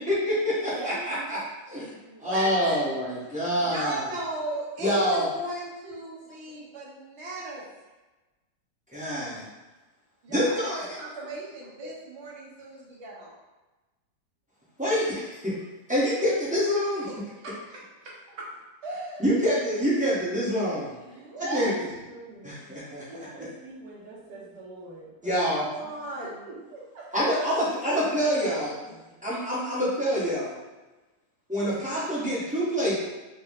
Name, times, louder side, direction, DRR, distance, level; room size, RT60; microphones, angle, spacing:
voice 1, 0.1-1.4 1.7-1.9 2.2-4.0 4.8-5.3 8.9-9.4 10.3-10.8 14.8-15.2 15.9-17.1 19.2-20.9 21.5-21.7 22.4-23.0 23.3-23.5 25.2-25.6 27.1-28.7 29.2-30.5 31.5-33.0, equal, 5° right, -10 dB, 0.7 m, -26 dB
voice 2, 0.7-1.4 2.3-2.9 21.0-21.3 21.5-22.6 23.1-25.9 26.4-27.1 28.1-29.1, right 3 dB, 65° right, -5 dB, 1.5 m, -44 dB
voice 3, 2.1-2.8 3.6-7.6 10.2-13.4 17.4-17.8 18.3-18.4 18.8-19.2 21.0-21.7 25.5-26.4, right 1 dB, 45° right, -5 dB, 1.0 m, -36 dB
4.5 x 2.1 x 3.5 m, 1.2 s
omnidirectional pair, 2.0 m